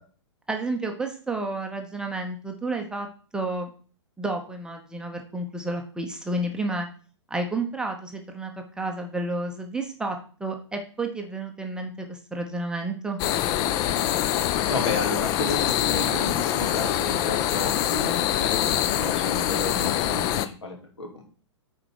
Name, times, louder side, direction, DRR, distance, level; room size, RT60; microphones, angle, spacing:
voice 1, 0.5-3.1 3.3-3.7 4.2-6.9 7.3-13.2, right 2 dB, 5° right, 3 dB, 0.8 m, -31 dB
sound 1, 13.2-20.5, left 12 dB, 25° left, 0.5 m, -24 dB
voice 2, 14.7-21.2, left 2 dB, 65° left, 2 dB, 2.6 m, -32 dB
8.8 x 4.5 x 4.8 m, 0.41 s
figure-of-eight pair, 110°, 15 cm